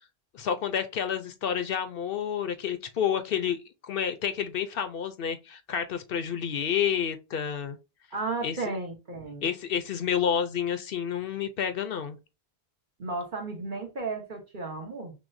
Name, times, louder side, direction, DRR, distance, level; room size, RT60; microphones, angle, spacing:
voice 1, 0.3-3.6 3.8-7.8 8.4-8.6 9.4-12.2, left 8 dB, 65° left, 0.8 m, -29 dB
voice 2, 8.1-9.5 13.0-15.1, right 3 dB, 50° right, 1.2 m, -34 dB
5.9 x 2.1 x 2.5 m
omnidirectional pair, 1.1 m